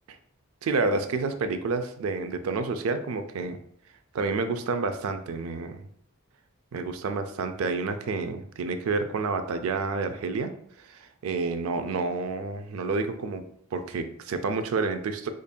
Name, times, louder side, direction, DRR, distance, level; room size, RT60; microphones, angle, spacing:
voice 1, 0.6-3.6 4.1-5.9 6.7-10.5 10.8-13.4 13.7-15.3, right 4 dB, 75° right, 8 dB, 0.4 m, -29 dB
5.1 x 2.5 x 2.2 m, 0.65 s
head